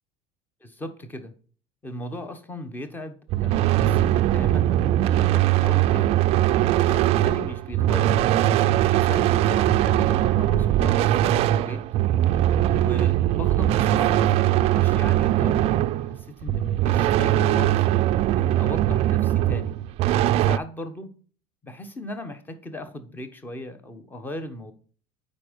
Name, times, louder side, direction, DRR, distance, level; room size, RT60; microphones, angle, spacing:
voice 1, 0.6-1.3 1.8-4.7 5.0-6.2 6.7-8.2 8.9-11.8 12.7-17.8 18.3-19.8 20.4-21.1 21.6-24.7, left 1 dB, 10° left, 10 dB, 1.1 m, -37 dB
sound 1, 3.3-20.6, right 13 dB, 40° right, 0.4 m, -21 dB
8.4 x 5.2 x 5.1 m, 0.42 s
cardioid pair, 160°, 15 cm